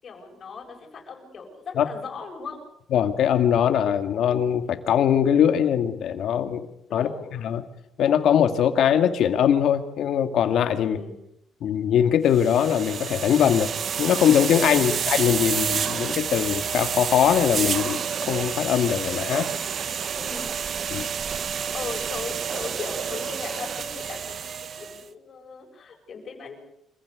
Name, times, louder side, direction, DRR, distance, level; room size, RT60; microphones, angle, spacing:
voice 1, 0.0-2.6 6.9-7.3 10.8-11.1 14.7-15.0 20.2-20.5 21.5-26.6, left 4 dB, 40° left, 1 dB, 7.4 m, -38 dB
voice 2, 2.9-7.6 8.0-11.0 11.6-13.7 14.0-19.5 20.9-21.1, left 9 dB, 65° left, 8 dB, 2.1 m, -22 dB
sound 1, 12.3-25.0, right 7 dB, 45° right, 1.1 m, -29 dB
27.0 x 15.5 x 8.2 m, 0.79 s
cardioid pair, 130°, 0 cm